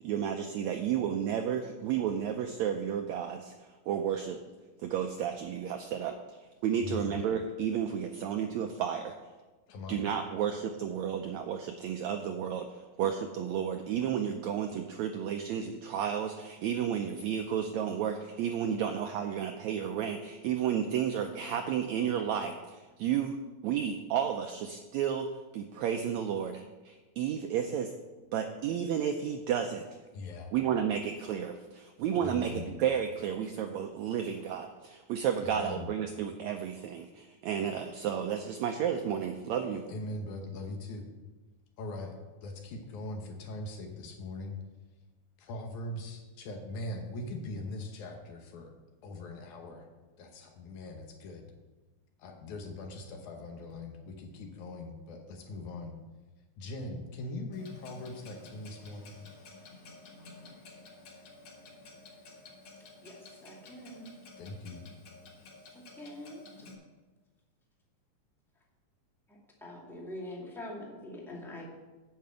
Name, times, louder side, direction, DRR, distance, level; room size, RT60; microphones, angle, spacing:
voice 1, 0.0-4.4 4.8-9.1 9.9-23.4 23.6-27.9 28.3-29.8 30.5-39.8, right 8 dB, 85° right, 5 dB, 1.6 m, -32 dB
voice 2, 6.8-7.2 9.7-10.0 30.1-30.5 32.2-32.7 35.4-35.9 39.9-41.1 41.8-44.6 45.4-48.7 49.0-49.9 50.2-51.5 52.2-56.0 56.6-59.2 64.4-64.9, left 2 dB, 70° left, 3 dB, 2.3 m, -41 dB
Clock, 57.5-66.7, left 3 dB, 50° left, 1.9 m, -52 dB
voice 3, 63.0-64.1 65.7-66.4 69.3-71.7, left 1 dB, ahead, -3 dB, 0.9 m, -44 dB
8.9 x 5.9 x 7.8 m, 1.2 s
omnidirectional pair, 3.9 m